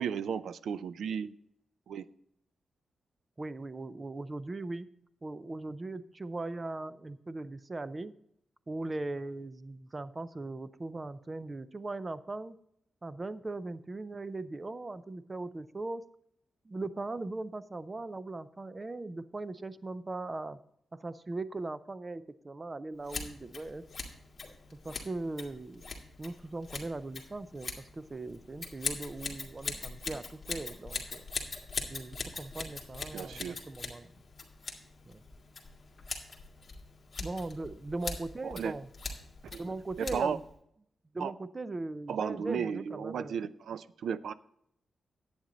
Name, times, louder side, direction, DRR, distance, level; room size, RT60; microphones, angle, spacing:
voice 1, 0.0-1.3 1.9-2.0 33.1-33.7 38.4-38.7 39.4-39.6 40.0-40.4 41.2-41.3 42.1-44.3, right 7 dB, 90° right, 15 dB, 0.4 m, -34 dB
voice 2, 3.4-4.9 5.2-8.1 8.7-12.6 13.0-16.0 16.7-20.6 20.9-23.8 24.8-25.9 26.2-31.2 31.9-34.1 35.1-35.2 37.2-38.9 39.6-40.4 41.1-43.4, right 2 dB, 25° right, 14 dB, 0.5 m, -39 dB
Scissors, 23.0-40.5, left 4 dB, 35° left, 2.0 m, -42 dB
10.5 x 8.8 x 3.9 m, 0.73 s
wide cardioid pair, 150°, 0 cm